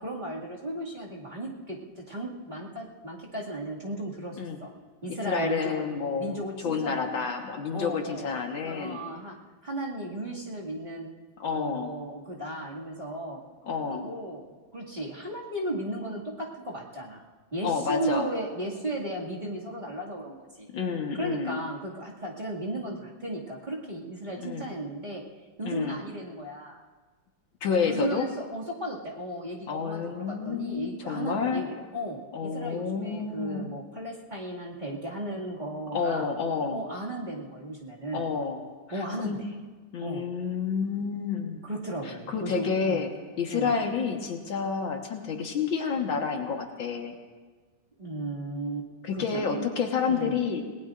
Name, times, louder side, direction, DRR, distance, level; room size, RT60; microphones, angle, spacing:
voice 1, 0.0-4.7 5.0-5.8 6.2-7.2 7.7-8.3 8.6-9.4 9.6-11.1 11.5-13.4 13.9-17.2 17.5-20.7 21.2-25.2 25.6-26.8 27.8-31.7 31.9-36.2 36.7-38.3 38.9-39.5 40.0-40.3 41.6-43.0 43.5-43.7 48.0-48.9 49.1-49.4 50.1-50.4, right 1 dB, 20° right, -5 dB, 2.2 m, -35 dB
voice 2, 5.1-9.0 11.4-11.9 13.6-14.1 17.6-18.3 20.7-21.6 24.4-24.7 25.6-26.0 27.6-28.3 29.7-31.6 32.3-33.7 35.9-36.8 38.1-38.6 38.9-39.4 39.9-41.7 42.0-43.1 43.4-47.1 49.0-50.6, left 6 dB, 70° left, 2 dB, 2.2 m, -29 dB
28.5 x 18.5 x 2.5 m, 1.4 s
omnidirectional pair, 2.2 m